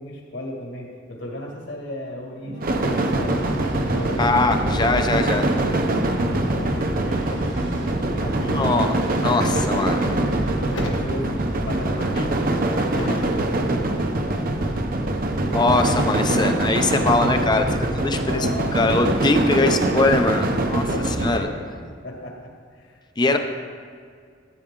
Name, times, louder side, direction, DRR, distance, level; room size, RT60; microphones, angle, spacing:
voice 1, 0.0-4.2 5.9-7.7 8.1-8.9 9.4-10.3 10.8-15.1 16.3-16.6 18.2-18.8 20.7-23.4, left 1 dB, 65° left, -1 dB, 2.1 m, -36 dB
sound 1, 2.4-10.7, equal, 75° right, 1.5 m, -35 dB
sound 2, 2.6-21.4, right 1 dB, 45° right, 0.8 m, -23 dB
voice 2, 4.2-5.4 8.5-8.9 9.2-10.1 12.2-12.3 15.5-17.7 17.9-18.5 18.7-20.9 21.2-21.5 23.2-23.4, left 2 dB, 20° left, 6 dB, 0.5 m, -21 dB
sound 3, 10.7-11.6 12.0-13.4 13.9-14.4 15.7-15.9, left 1 dB, 85° left, 1.3 m, -35 dB
13.5 x 8.3 x 3.7 m, 2.1 s
head